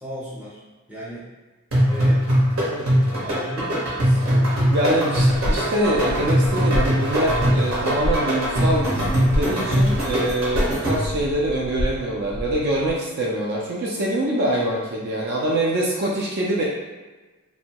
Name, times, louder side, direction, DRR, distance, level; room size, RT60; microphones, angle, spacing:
voice 1, 0.0-0.6 0.9-1.3 1.9-2.2 2.6-4.2, right 1 dB, 5° right, -8 dB, 0.6 m, -35 dB
sound 1, 1.7-11.2, equal, 70° right, 0.9 m, -21 dB
voice 2, 4.7-16.7, right 1 dB, 45° right, -3 dB, 0.3 m, -24 dB
sound 2, 5.2-12.9, left 1 dB, 80° left, 0.4 m, -29 dB
2.6 x 2.1 x 2.8 m, 1.3 s
head